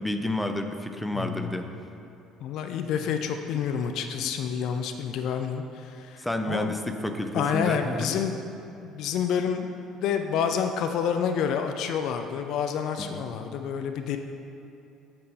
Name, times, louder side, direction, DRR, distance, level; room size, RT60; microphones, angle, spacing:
voice 1, 0.0-1.7 3.7-3.8 4.2-4.3 6.2-8.2 13.0-13.5, left 1 dB, 5° left, 6 dB, 0.7 m, -30 dB
voice 2, 1.1-1.6 2.4-6.8 7.3-8.4 8.8-9.7 10.0-14.2, left 7 dB, 55° left, 6 dB, 0.5 m, -28 dB
8.7 x 6.7 x 5.5 m, 2.8 s
figure-of-eight pair, 55°, 0 cm